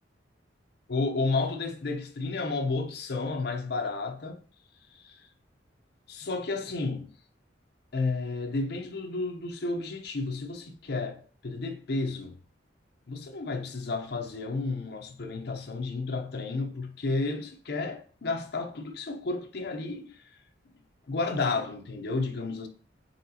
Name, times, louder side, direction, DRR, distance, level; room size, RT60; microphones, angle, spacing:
voice 1, 0.9-4.4 4.9-5.2 6.1-7.1 7.9-12.4 13.1-20.4 21.1-22.7, left 3 dB, 60° left, 0.6 m, -32 dB
4.1 x 3.1 x 2.7 m
head